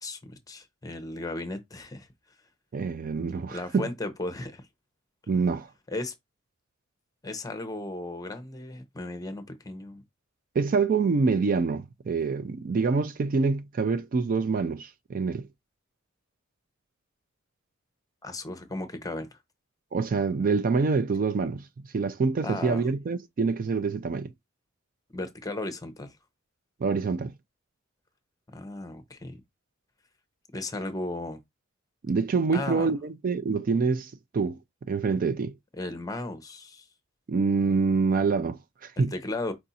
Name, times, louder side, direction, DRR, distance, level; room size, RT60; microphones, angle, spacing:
voice 1, 0.0-2.1 3.5-4.7 5.9-6.1 7.2-10.0 18.2-19.4 22.4-22.8 25.1-26.2 28.5-29.4 30.5-31.4 32.5-32.9 35.8-36.9 39.0-39.5, left 2 dB, 20° left, 0.8 m, -35 dB
voice 2, 2.7-3.9 5.3-5.7 10.6-15.5 19.9-21.7 21.9-24.3 26.8-27.3 32.0-34.6 34.9-35.5 37.3-39.1, right 4 dB, 45° right, 0.4 m, -26 dB
4.8 x 2.5 x 4.1 m
head